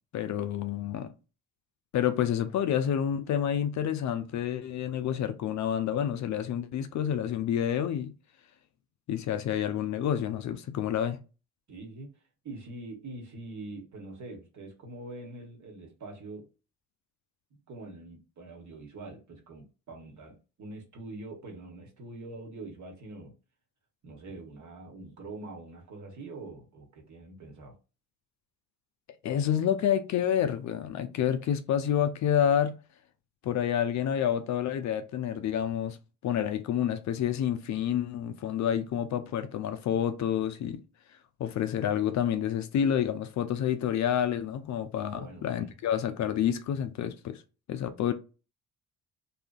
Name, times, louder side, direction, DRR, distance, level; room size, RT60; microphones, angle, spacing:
voice 1, 0.1-1.1 1.9-8.1 9.1-11.2 29.2-32.8 33.4-36.0 36.2-40.8 41.4-47.4 47.7-48.1, left 9 dB, 50° left, 0.4 m, -28 dB
voice 2, 11.7-12.2 12.4-16.5 17.7-23.3 24.0-27.8 45.1-45.7, right 2 dB, 50° right, 1.2 m, -44 dB
2.7 x 2.4 x 2.3 m
hypercardioid pair, 55°, 38 cm